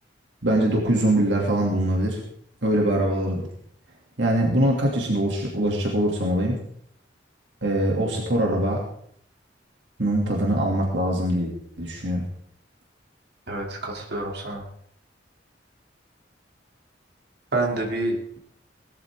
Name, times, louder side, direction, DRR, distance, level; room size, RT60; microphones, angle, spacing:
voice 1, 0.4-2.2 2.6-3.5 4.2-6.6 7.6-8.8 10.0-11.5 11.8-12.2, right 1 dB, 80° right, -1 dB, 3.0 m, -23 dB
voice 2, 13.5-14.6 17.5-18.4, right 2 dB, 65° right, -1 dB, 3.4 m, -28 dB
19.5 x 13.5 x 3.9 m, 0.65 s
head